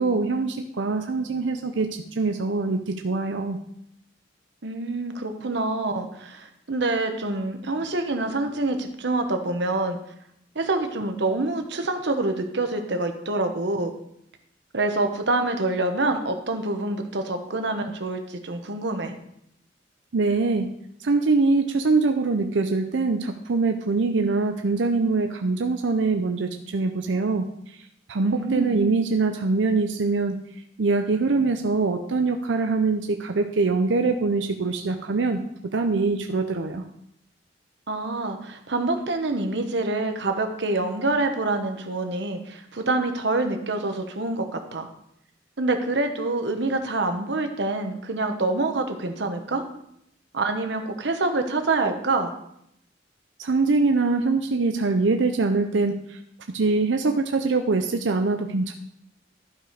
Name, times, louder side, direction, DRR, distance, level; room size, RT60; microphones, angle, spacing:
voice 1, 0.0-3.6 20.1-20.7 21.0-27.8 28.1-30.4 30.8-35.4 35.7-36.8 53.4-56.2 56.5-58.7, right 3 dB, 90° right, 5 dB, 0.6 m, -23 dB
voice 2, 4.6-10.0 10.5-13.9 14.7-19.1 28.2-28.8 37.9-44.9 45.6-49.6 50.3-52.3, right 2 dB, 70° right, 6 dB, 1.1 m, -26 dB
12.0 x 4.9 x 5.0 m, 0.75 s
head